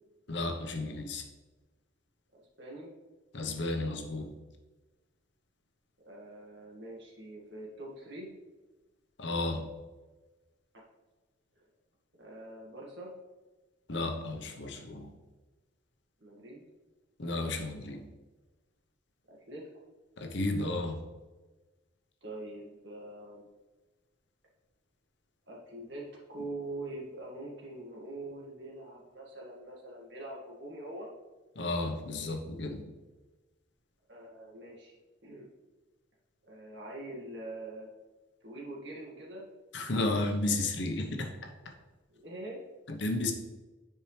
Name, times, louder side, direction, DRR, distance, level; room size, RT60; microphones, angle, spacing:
voice 1, 0.3-1.2 3.3-4.3 9.2-9.6 13.9-15.1 17.2-18.0 20.2-21.0 31.6-32.8 39.7-41.3 42.9-43.3, left 2 dB, 65° left, 4 dB, 0.9 m, -33 dB
voice 2, 2.3-2.9 6.0-8.3 11.6-11.7 12.2-13.1 16.2-16.6 19.3-19.7 22.2-23.5 25.5-31.1 32.2-32.3 34.1-35.0 35.2-35.5 36.4-37.9 38.4-39.5 42.1-42.6, right 2 dB, 65° right, -3 dB, 1.9 m, -44 dB
9.9 x 4.7 x 3.3 m, 1.2 s
head